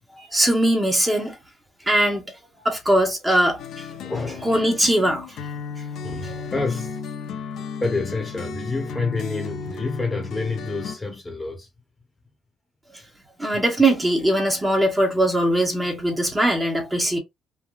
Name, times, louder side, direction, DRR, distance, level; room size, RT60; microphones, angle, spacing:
voice 1, 0.2-1.4 1.9-2.3 2.6-3.9 4.4-5.4 6.2-6.3 13.4-17.2, right 1 dB, 15° right, 1.1 m, -21 dB
sound 1, 3.6-10.9, left 5 dB, 70° left, 0.7 m, -34 dB
voice 2, 4.0-4.5 6.0-7.0 7.8-11.7, left 3 dB, 20° left, 1.0 m, -28 dB
3.5 x 2.2 x 2.4 m
cardioid pair, 90°, 0 cm